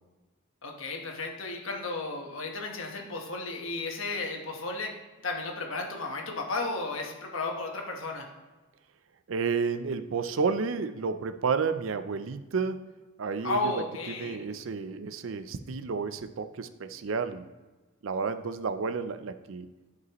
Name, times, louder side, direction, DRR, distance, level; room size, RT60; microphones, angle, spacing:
voice 1, 0.6-4.9 5.2-8.3 13.4-14.4, left 2 dB, 80° left, 2 dB, 1.3 m, -33 dB
voice 2, 9.3-13.8 14.1-17.4 18.0-19.7, right 5 dB, 75° right, 10 dB, 0.5 m, -31 dB
11.0 x 5.3 x 3.0 m, 1.2 s
head